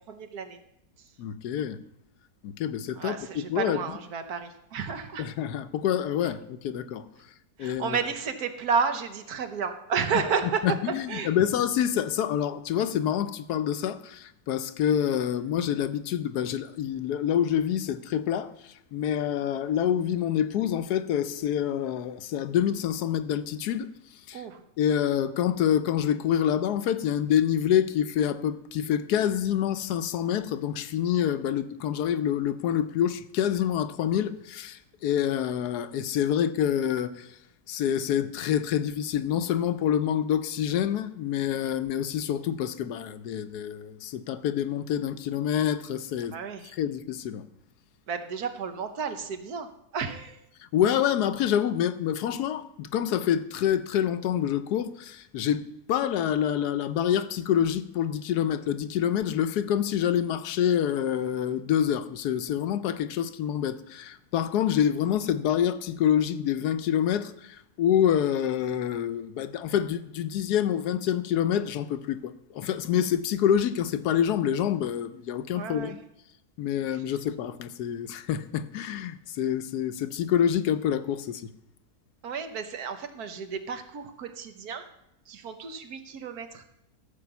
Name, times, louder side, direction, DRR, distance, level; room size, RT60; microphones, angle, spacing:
voice 1, 0.1-0.6 3.0-5.3 7.6-10.6 11.1-11.3 24.3-24.6 46.3-46.7 48.1-49.7 49.9-50.4 75.5-75.9 82.2-84.8 85.3-86.6, right 6 dB, 75° right, 1.5 m, -32 dB
voice 2, 1.2-1.8 2.4-4.0 5.2-7.0 7.6-8.0 10.1-10.2 10.6-23.9 24.3-24.4 24.8-37.4 37.7-46.4 46.7-47.4 50.6-76.0 76.6-81.5, left 9 dB, 80° left, 1.2 m, -27 dB
14.0 x 5.4 x 6.9 m
omnidirectional pair, 1.7 m